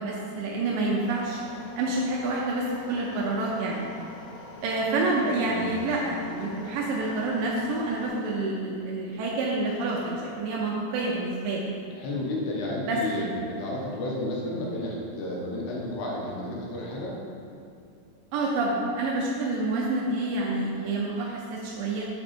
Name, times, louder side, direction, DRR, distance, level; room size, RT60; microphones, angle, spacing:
voice 1, 0.0-1.4 1.8-3.9 4.6-11.7 12.9-13.4 18.3-22.1, right 2 dB, 85° right, -3 dB, 1.9 m, -28 dB
sound 1, 1.0-8.1, left 2 dB, 60° left, 1.1 m, -45 dB
voice 2, 12.0-17.2, left 1 dB, 80° left, -3 dB, 3.3 m, -32 dB
7.9 x 5.3 x 4.3 m, 2.6 s
omnidirectional pair, 4.8 m